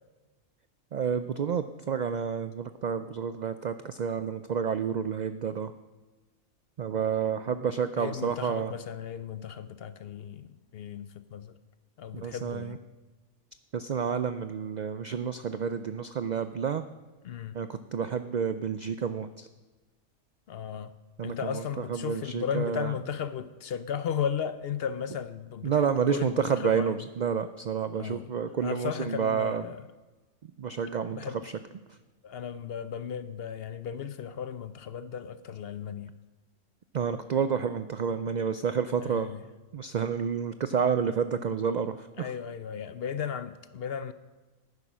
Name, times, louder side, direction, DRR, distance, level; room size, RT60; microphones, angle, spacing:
voice 1, 0.9-5.7 6.8-8.7 12.1-12.8 13.7-16.9 17.5-19.5 21.2-22.9 25.6-29.6 30.4-31.2 31.4-31.5 31.9-32.0 36.9-39.3 39.7-42.3, right 7 dB, 80° right, 0.4 m, -30 dB
voice 2, 7.9-11.5 12.0-12.8 17.2-17.6 20.5-20.9 21.2-27.0 27.9-28.3 28.6-29.9 31.1-31.5 32.2-36.1 39.0-39.4 42.2-44.1, left 8 dB, 60° left, 0.7 m, -35 dB
11.5 x 9.7 x 6.2 m
omnidirectional pair, 1.3 m